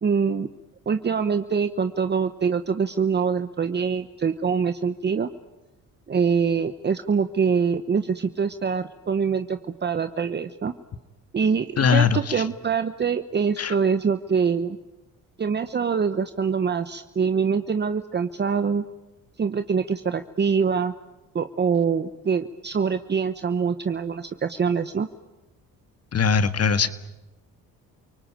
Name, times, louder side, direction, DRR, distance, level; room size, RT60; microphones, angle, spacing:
voice 1, 0.0-0.5 0.9-5.3 6.1-10.7 11.3-14.8 15.4-18.8 19.4-20.9 21.3-25.1, right 6 dB, 30° right, 10 dB, 1.0 m, -24 dB
voice 2, 11.8-12.5 13.6-13.7 26.1-26.9, left 6 dB, 45° left, 11 dB, 1.7 m, -21 dB
29.0 x 19.0 x 9.0 m, 1.0 s
cardioid pair, 80°, 33 cm